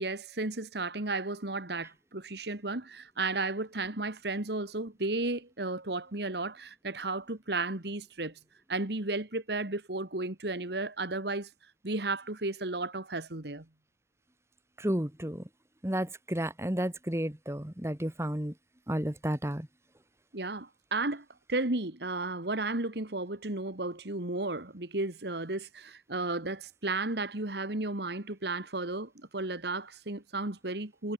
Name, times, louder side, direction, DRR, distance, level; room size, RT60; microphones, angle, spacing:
voice 1, 0.0-8.3 8.7-11.5 11.8-13.7 20.3-31.1, right 2 dB, 65° right, 2.1 m, -34 dB
voice 2, 14.8-15.4 15.8-18.5 18.9-19.7, right 1 dB, 15° right, 1.8 m, -32 dB
head